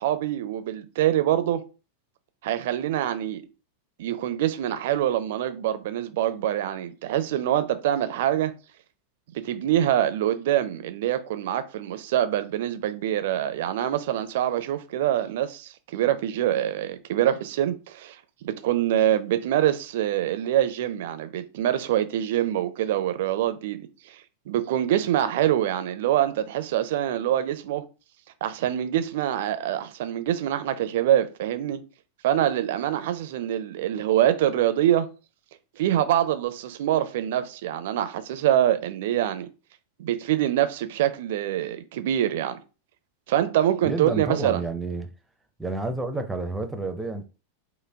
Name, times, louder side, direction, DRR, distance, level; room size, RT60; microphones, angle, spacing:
voice 1, 0.0-1.6 2.4-3.4 4.0-8.5 9.3-18.2 18.4-23.8 24.1-27.8 28.4-31.8 32.2-35.1 35.8-39.5 40.0-42.6 43.3-44.6, right 11 dB, 55° right, 0.5 m, -25 dB
voice 2, 43.8-45.1 45.6-47.3, right 2 dB, 5° right, 0.6 m, -30 dB
5.1 x 2.2 x 3.4 m
figure-of-eight pair, 90°, 0 cm